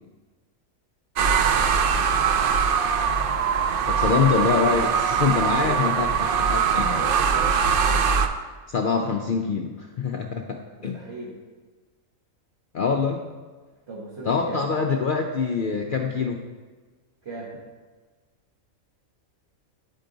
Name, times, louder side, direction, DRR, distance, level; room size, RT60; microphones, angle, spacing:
sound 1, 1.2-8.3, right 6 dB, 80° right, 0.5 m, -22 dB
voice 1, 3.8-7.0 8.7-11.0 12.7-13.3 14.3-16.4, left 5 dB, 80° left, 2 dB, 0.4 m, -25 dB
voice 2, 5.1-6.0 6.4-6.5 6.8-7.7 10.9-11.3 13.9-14.6 17.2-17.5, right 2 dB, 50° right, -7 dB, 1.6 m, -37 dB
10.5 x 4.6 x 3.9 m, 1.3 s
omnidirectional pair, 1.5 m